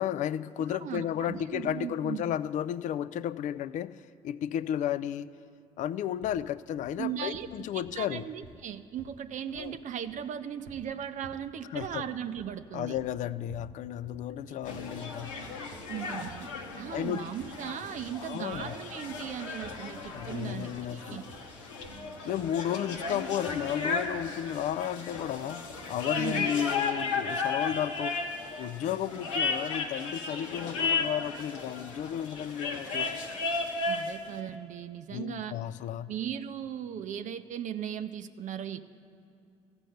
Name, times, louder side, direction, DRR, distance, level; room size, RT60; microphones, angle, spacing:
voice 1, 0.0-4.0 4.2-5.3 5.8-8.3 9.5-9.8 11.7-12.0 12.7-15.4 16.9-17.2 18.2-18.7 20.1-21.2 22.2-28.2 28.6-33.1 35.1-36.1, left 10 dB, 55° left, 16 dB, 0.4 m, -33 dB
voice 2, 0.7-2.2 7.0-13.0 14.5-14.6 15.9-16.5 16.8-21.2 26.2-26.5 33.9-35.6 36.1-38.8, right 9 dB, 55° right, 10 dB, 0.5 m, -37 dB
sound 1, 6.2-6.5 6.8-7.0 7.3-8.7 9.0-9.8 10.1-11.0 11.2-11.5 11.8-12.0 12.4-13.8 14.0-14.3 14.6-16.0 16.3-16.5 16.8-17.7 17.9-18.2 18.5-18.8 19.1-19.3 19.6-19.9 20.2-20.4 20.7-21.0 21.3-21.5 21.8-22.5 22.9-23.2 23.5-23.8 24.0-24.3 24.6-24.9 25.1-25.4 25.7-26.0, right 3 dB, 75° right, 0.9 m, -53 dB
sound 2, 14.6-34.2, left 4 dB, 80° left, 0.9 m, -35 dB
14.0 x 5.3 x 7.8 m, 2.6 s
hypercardioid pair, 50°, 16 cm